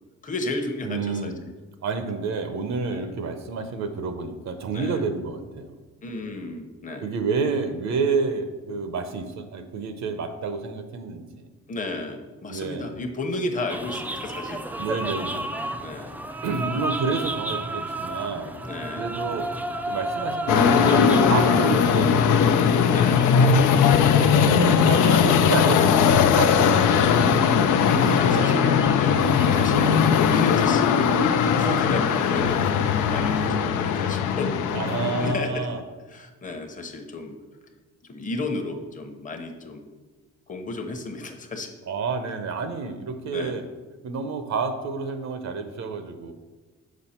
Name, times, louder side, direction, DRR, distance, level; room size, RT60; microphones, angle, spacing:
voice 1, 0.2-1.3 2.9-3.1 4.7-5.0 6.0-7.1 11.7-14.6 15.8-16.2 16.7-16.8 18.6-19.0 22.9-24.5 28.0-28.7 28.9-29.2 29.5-31.1 31.6-34.5 35.2-35.7 36.1-37.3 38.1-39.8 40.5-41.7 43.3-43.6, left 2 dB, 25° left, 4 dB, 0.9 m, -33 dB
voice 2, 0.8-1.4 1.8-5.8 7.0-11.5 12.5-12.9 14.8-15.7 16.4-18.6 19.0-19.5 19.9-22.5 24.9-28.9 34.7-35.8 41.9-43.6 44.0-46.3, right 4 dB, 65° right, 8 dB, 0.7 m, -29 dB
sound 1, 13.7-33.5, right 1 dB, 5° right, 0.4 m, -34 dB
sound 2, 20.5-35.3, left 7 dB, 80° left, 0.5 m, -19 dB
6.2 x 4.9 x 4.3 m, 1.3 s
cardioid pair, 90°, 30 cm